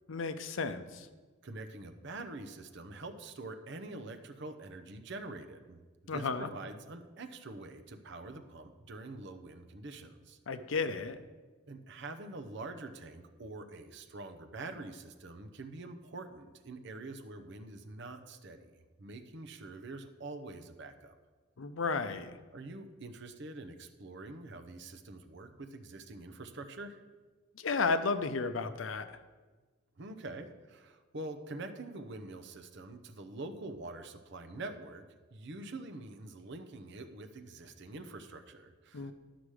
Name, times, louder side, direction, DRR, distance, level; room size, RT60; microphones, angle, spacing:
voice 1, 0.1-1.1 6.1-6.5 10.5-11.2 21.6-22.4 27.6-29.1 38.9-39.1, left 4 dB, 70° left, 11 dB, 0.6 m, -33 dB
voice 2, 1.4-10.4 11.7-21.1 22.5-27.0 30.0-35.0 35.3-39.1, right 2 dB, 60° right, 7 dB, 0.7 m, -45 dB
11.5 x 5.9 x 4.9 m, 1.3 s
head